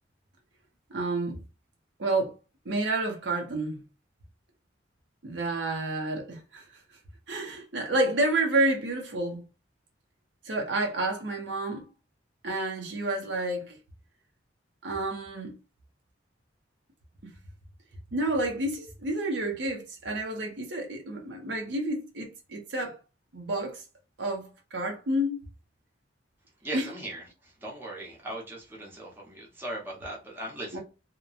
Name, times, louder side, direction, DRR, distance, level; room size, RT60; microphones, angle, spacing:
voice 1, 0.9-1.4 2.0-2.3 2.6-3.8 5.2-6.6 7.3-9.4 10.4-11.9 12.4-13.8 14.8-15.5 18.1-22.9 23.3-23.8 24.2-25.4 26.7-26.9 30.7-30.8, right 2 dB, 75° right, 0.7 m, -29 dB
voice 2, 26.6-27.2 27.6-30.8, right 1 dB, 10° right, 0.8 m, -38 dB
2.8 x 2.1 x 2.4 m
head